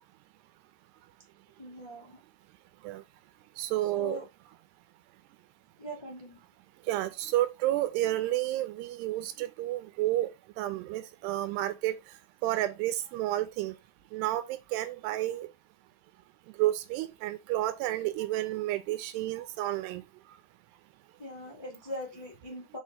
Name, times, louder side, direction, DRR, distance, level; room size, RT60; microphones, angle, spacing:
voice 1, 1.6-2.2 3.9-4.2 5.8-6.4 12.4-12.5 21.2-22.8, left 1 dB, 35° left, 0.4 m, -41 dB
voice 2, 3.6-4.2 6.9-10.3 10.6-11.9 12.4-13.7 14.1-14.5 14.7-15.5 16.6-20.0, right 15 dB, 85° right, 2.8 m, -30 dB
5.7 x 4.7 x 5.2 m
omnidirectional pair, 4.7 m